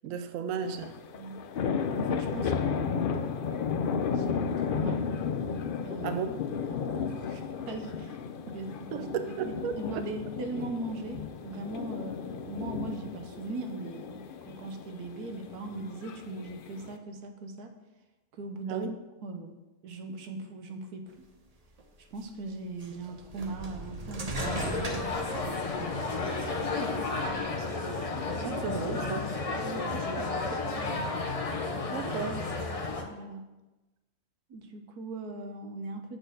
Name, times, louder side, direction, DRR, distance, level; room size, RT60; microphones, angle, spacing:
voice 1, 0.0-0.9 6.0-6.3 8.9-10.0 18.7-19.0 28.4-29.3 31.9-32.5, right 7 dB, 70° right, 8 dB, 0.9 m, -34 dB
sound 1, 0.6-17.0, left 6 dB, 85° left, 0.4 m, -34 dB
voice 2, 2.0-3.2 4.1-5.0 5.8-6.2 6.7-8.2 8.5-9.1 9.4-17.7 18.3-18.9 19.2-19.5 19.8-21.3 22.0-28.1 28.4-28.6 29.6-31.1 33.1-33.5 34.5-36.2, right 2 dB, 85° right, 5 dB, 1.4 m, -40 dB
sound 2, 21.8-21.9 22.8-25.9 26.4-27.4, right 2 dB, 35° right, 0.7 m, -38 dB
sound 3, 24.4-33.0, left 3 dB, 30° left, 0.7 m, -32 dB
7.7 x 4.4 x 6.5 m, 1.1 s
omnidirectional pair, 1.6 m